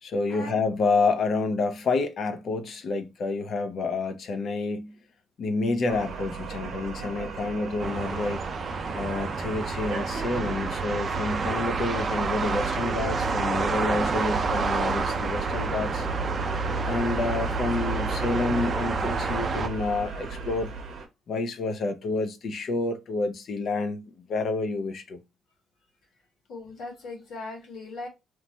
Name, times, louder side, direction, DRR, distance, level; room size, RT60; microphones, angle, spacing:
voice 1, 0.0-4.9 5.4-8.4 8.9-16.1 16.9-20.7 21.3-25.2, left 3 dB, 60° left, 0.5 m, -29 dB
sound 1, 5.9-21.1, right 3 dB, 75° right, 0.7 m, -34 dB
sound 2, 7.8-19.7, right 4 dB, 40° right, 0.4 m, -29 dB
voice 2, 26.5-28.1, left 3 dB, 75° left, 1.6 m, -38 dB
3.0 x 2.1 x 2.6 m
cardioid pair, 90°, 0 cm